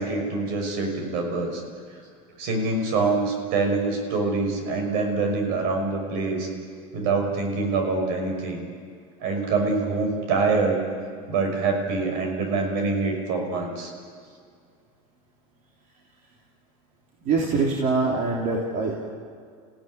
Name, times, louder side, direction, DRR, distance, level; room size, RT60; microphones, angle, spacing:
voice 1, 0.0-1.6 2.4-6.5 6.9-8.6 9.2-10.8 11.3-13.9, right 3 dB, 65° right, 3 dB, 6.1 m, -25 dB
voice 2, 17.2-19.1, right 3 dB, 50° right, -2 dB, 3.6 m, -24 dB
27.5 x 16.5 x 9.8 m, 2.2 s
supercardioid pair, 110°, 18 cm